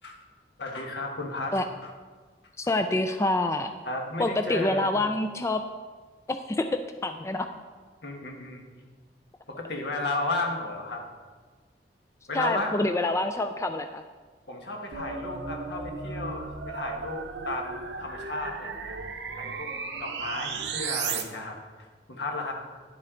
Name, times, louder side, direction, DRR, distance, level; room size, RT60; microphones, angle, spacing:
voice 1, 0.6-1.9 3.8-5.1 8.0-8.6 9.5-11.0 12.3-12.9 14.5-19.0 19.3-19.7 20.0-22.5, left 2 dB, 75° left, 1 dB, 1.5 m, -34 dB
voice 2, 2.6-3.7 4.2-5.6 6.3-7.5 12.3-14.0, left 2 dB, 15° left, 7 dB, 0.3 m, -27 dB
sound 1, 14.9-21.2, right 5 dB, 80° right, 0.8 m, -35 dB
10.5 x 7.5 x 3.8 m, 1.4 s
head